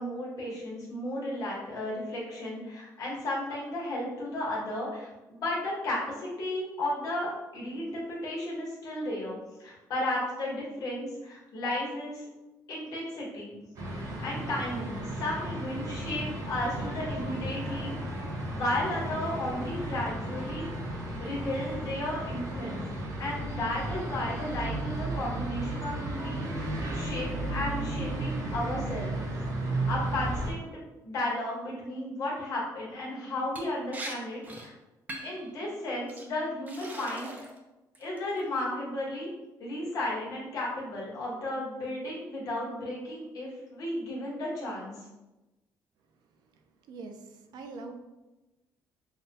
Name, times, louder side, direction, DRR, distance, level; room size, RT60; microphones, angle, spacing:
voice 1, 0.0-12.3 12.7-13.6 14.2-17.9 18.5-20.7 21.2-22.8 23.2-26.6 26.9-29.1 29.9-34.7 35.2-37.5 38.0-39.3 39.6-44.9, left 1 dB, 55° left, -4 dB, 1.3 m, -34 dB
sound 1, 13.8-30.5, right 1 dB, 50° right, 1.0 m, -34 dB
Liquid, 33.6-33.7 33.9-34.1 34.4-34.7 35.1-35.4 36.1-36.2 36.7-37.6 37.9-38.4, right 1 dB, 25° right, 0.5 m, -41 dB
voice 2, 46.9-47.9, right 3 dB, 75° right, 5 dB, 0.5 m, -43 dB
5.7 x 2.3 x 2.8 m, 1.0 s
cardioid pair, 155°, 7 cm